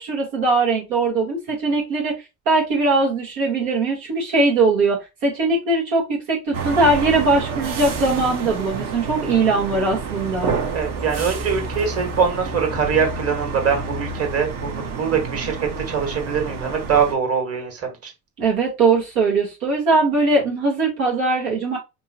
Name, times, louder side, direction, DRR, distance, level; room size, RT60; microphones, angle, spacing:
voice 1, 0.0-2.1 2.5-10.5 18.4-21.8, right 3 dB, 65° right, 1.6 m, -20 dB
sound 1, 6.5-17.1, right 4 dB, 45° right, 1.2 m, -29 dB
voice 2, 10.7-15.6 15.9-18.1, right 6 dB, 30° right, 1.8 m, -23 dB
5.2 x 2.2 x 2.9 m
figure-of-eight pair, 60°, 46 cm